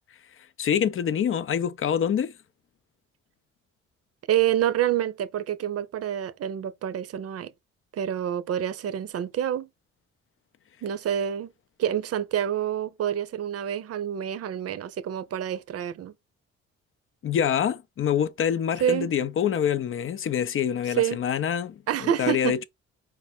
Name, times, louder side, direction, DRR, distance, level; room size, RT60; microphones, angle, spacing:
voice 1, 0.1-2.4 17.2-22.6, left 8 dB, 45° left, 0.5 m, -26 dB
voice 2, 4.3-7.5 7.9-9.7 10.8-11.5 11.8-16.1 18.8-19.1 21.0-21.2 21.9-22.5, right 10 dB, 55° right, 0.6 m, -27 dB
4.4 x 2.2 x 4.3 m
supercardioid pair, 60°, 30 cm